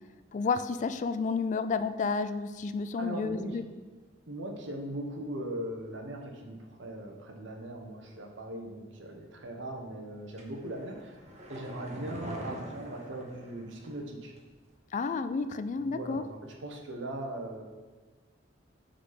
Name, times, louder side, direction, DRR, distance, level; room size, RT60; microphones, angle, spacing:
voice 1, 0.3-3.6 14.9-16.2, left 4 dB, 40° left, 11 dB, 0.3 m, -31 dB
voice 2, 3.0-3.6 4.3-11.2 11.5-14.3 15.8-17.6, right 1 dB, 70° right, 3 dB, 0.9 m, -39 dB
sound 1, 10.4-14.1 14.4-14.5, equal, 35° right, 1.0 m, -44 dB
6.2 x 4.1 x 5.7 m, 1.3 s
head